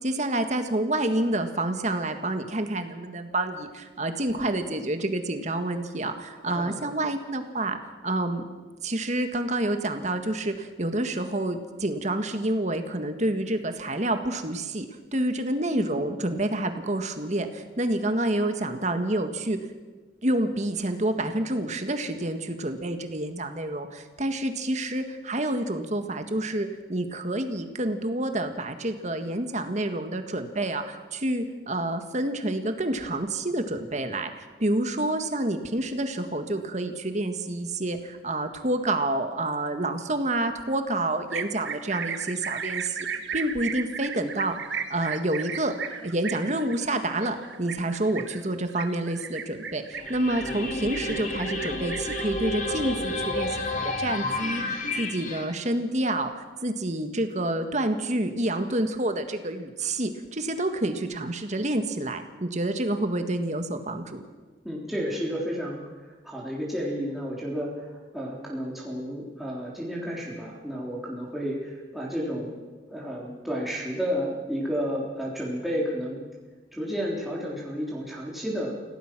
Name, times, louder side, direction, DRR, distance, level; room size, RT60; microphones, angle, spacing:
voice 1, 0.0-7.8 8.0-8.5 8.8-14.9 15.1-19.7 20.2-45.8 46.0-64.2, right 1 dB, 40° right, 7 dB, 1.8 m, -28 dB
voice 2, 6.5-6.9 64.6-65.8 66.2-72.5 72.9-76.2 76.7-78.7, equal, ahead, -5 dB, 3.6 m, -31 dB
sound 1, 41.3-52.2, right 6 dB, 85° right, 1.6 m, -35 dB
sound 2, 49.9-55.5, left 2 dB, 45° left, 2.5 m, -31 dB
27.0 x 17.5 x 6.1 m, 1.3 s
head